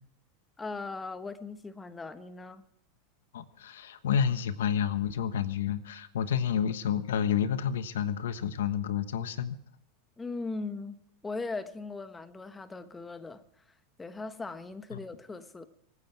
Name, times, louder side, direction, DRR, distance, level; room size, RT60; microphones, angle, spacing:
voice 1, 0.6-2.6 10.2-11.0 11.2-13.6 14.0-15.6, left 3 dB, 15° left, 1.2 m, -39 dB
voice 2, 3.3-9.6, left 8 dB, 85° left, 1.2 m, -29 dB
25.5 x 9.8 x 4.6 m
supercardioid pair, 120°, 0 cm